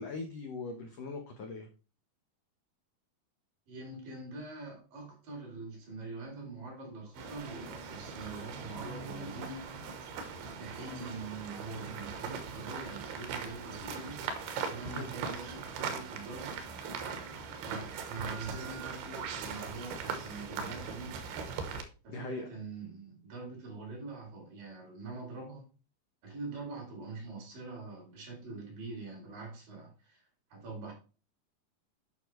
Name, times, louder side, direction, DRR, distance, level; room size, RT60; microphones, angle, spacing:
voice 1, 0.0-1.7 14.8-15.1 22.1-22.5, left 3 dB, 80° left, 1.5 m, -40 dB
voice 2, 3.7-9.7 10.6-16.6 17.6-21.2 22.0-25.7 26.2-30.2 30.5-30.9, right 3 dB, 60° right, 4.6 m, -44 dB
sound 1, 7.2-21.8, right 6 dB, 80° right, 3.0 m, -40 dB
9.5 x 5.9 x 3.2 m
omnidirectional pair, 4.6 m